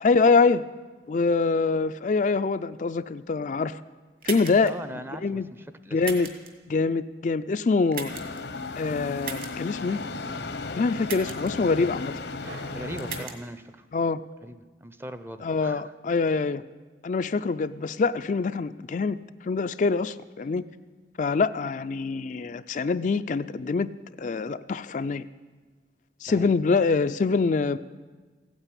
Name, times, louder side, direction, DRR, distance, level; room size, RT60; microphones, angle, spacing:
voice 1, 0.0-0.7 1.1-3.8 4.3-4.8 5.2-5.5 5.9-6.3 6.7-8.1 8.8-10.0 10.7-12.1 13.9-14.2 15.4-16.6 17.0-19.2 19.4-20.6 21.2-23.9 24.2-25.3 26.2-27.8, left 4 dB, 45° left, 10 dB, 0.4 m, -24 dB
sound 1, 4.2-4.7 6.0-6.5 7.9-8.4 9.2-9.5 11.1-11.5 13.0-13.4, right 6 dB, 55° right, 2.0 m, -36 dB
voice 2, 4.6-6.0 12.7-13.9 14.4-15.9 26.3-26.5, right 1 dB, 15° right, 12 dB, 0.6 m, -40 dB
sound 2, 8.1-13.2, left 3 dB, 80° left, 0.9 m, -35 dB
sound 3, 12.4-14.2, right 1 dB, 75° right, 2.4 m, -48 dB
15.5 x 9.0 x 9.9 m, 1.4 s
head